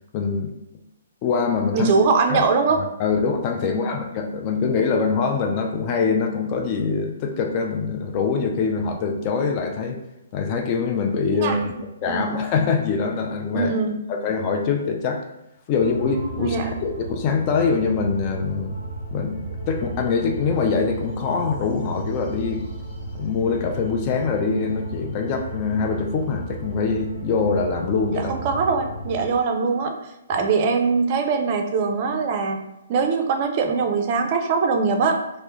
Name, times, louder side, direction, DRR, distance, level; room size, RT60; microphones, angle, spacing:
voice 1, 0.1-0.5 1.2-1.9 2.3-2.4 3.0-10.0 10.3-11.7 12.0-13.7 14.1-15.2 15.7-18.8 19.1-22.6 23.1-28.3, left 5 dB, 35° left, 3 dB, 0.3 m, -24 dB
voice 2, 1.7-2.8 3.6-3.7 11.3-11.6 12.1-12.4 13.5-14.0 16.4-16.7 28.1-35.2, right 4 dB, 40° right, 4 dB, 0.4 m, -22 dB
sound 1, 15.8-29.3, right 2 dB, 10° right, 0.9 m, -34 dB
2.2 x 2.0 x 2.8 m, 0.90 s
figure-of-eight pair, 135°, 0 cm